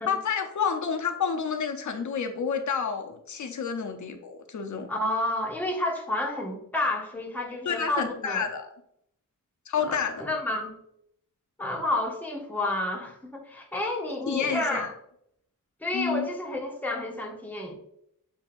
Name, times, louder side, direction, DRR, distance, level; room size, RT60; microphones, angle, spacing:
voice 1, 0.1-4.9 7.6-8.7 9.7-10.2 14.3-14.9 15.9-16.3, left 6 dB, 60° left, 6 dB, 0.7 m, -29 dB
voice 2, 4.9-8.5 9.9-10.8 11.6-14.9 15.8-17.7, left 1 dB, 5° left, -1 dB, 0.9 m, -30 dB
7.2 x 2.7 x 2.5 m, 0.73 s
wide cardioid pair, 90°, 34 cm